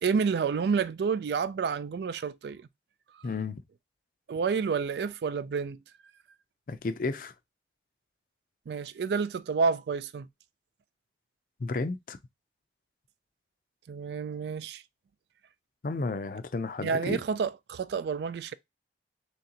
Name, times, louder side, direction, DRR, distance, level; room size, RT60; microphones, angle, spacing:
voice 1, 0.0-2.7 3.1-3.3 4.3-5.8 8.7-10.3 13.9-14.8 16.8-18.5, right 5 dB, 70° right, 0.3 m, -29 dB
voice 2, 3.2-3.6 6.7-7.3 11.6-12.2 15.8-17.2, left 3 dB, 50° left, 0.4 m, -32 dB
3.9 x 3.2 x 2.8 m
head